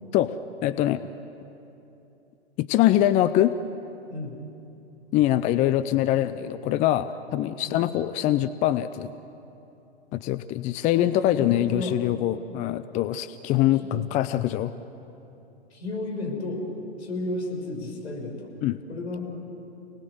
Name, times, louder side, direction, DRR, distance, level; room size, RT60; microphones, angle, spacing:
voice 1, 0.6-1.0 2.6-3.6 5.1-9.1 10.1-14.7 18.6-18.8, left 13 dB, 25° left, 13 dB, 0.6 m, -23 dB
voice 2, 4.1-4.5 7.6-8.0 10.9-12.0 15.7-16.6 17.0-18.5 18.9-19.3, left 2 dB, 75° left, 0 dB, 6.5 m, -33 dB
29.0 x 19.5 x 7.9 m, 2.9 s
figure-of-eight pair, 110°, 33 cm